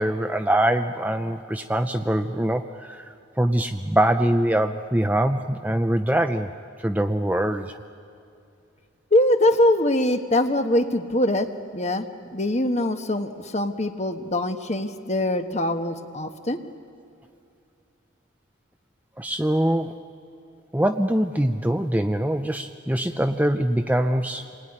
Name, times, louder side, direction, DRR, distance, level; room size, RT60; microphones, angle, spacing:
voice 1, 0.0-3.1 3.4-6.5 6.8-7.8 19.2-19.9 20.7-24.4, right 1 dB, 10° right, 7 dB, 0.5 m, -23 dB
voice 2, 9.1-12.1 12.3-16.6, left 1 dB, 35° left, 7 dB, 1.3 m, -23 dB
28.0 x 20.5 x 10.0 m, 2.6 s
head